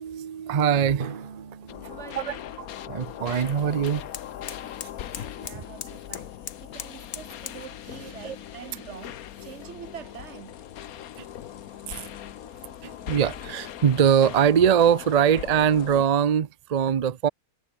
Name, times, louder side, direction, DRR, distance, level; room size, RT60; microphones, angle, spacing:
voice 1, 0.0-1.4 2.2-4.0 8.2-8.4 11.2-11.3 11.9-12.1 12.8-17.3, right 8 dB, 70° right, 0.3 m, -23 dB
sound 1, 0.9-7.7, left 8 dB, 50° left, 1.1 m, -43 dB
Drum, 1.0-3.9, right 5 dB, 35° right, 1.3 m, -42 dB
sound 2, 1.7-16.1, left 11 dB, 70° left, 1.3 m, -40 dB
voice 2, 1.9-2.4 5.4-6.3 6.6-10.6, right 8 dB, 50° right, 1.1 m, -44 dB
omnidirectional pair, 1.6 m